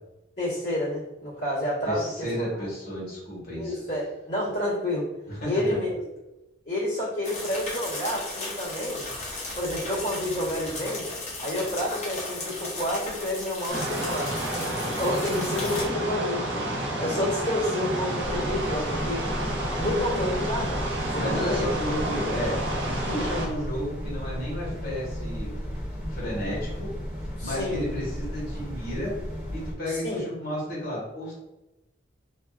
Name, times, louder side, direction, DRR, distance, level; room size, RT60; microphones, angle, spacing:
voice 1, 0.4-2.6 3.6-5.0 5.5-6.0 6.6-9.1 9.6-11.0 11.4-16.7 17.0-19.3 19.8-21.6 23.1-23.3 27.4-27.9 29.9-30.2, left 1 dB, 75° left, -11 dB, 1.3 m, -29 dB
voice 2, 1.8-3.8 5.3-5.5 18.6-18.7 21.2-22.6 22.8-25.5 26.1-26.9 27.4-29.1 29.5-31.3, left 1 dB, 55° left, -6 dB, 1.3 m, -32 dB
sound 1, 7.2-15.8, left 2 dB, 40° left, 0.7 m, -36 dB
sound 2, 13.7-23.5, right 1 dB, 80° right, 0.6 m, -30 dB
sound 3, 18.2-29.7, equal, 10° right, 0.4 m, -34 dB
2.6 x 2.3 x 2.3 m, 0.98 s
head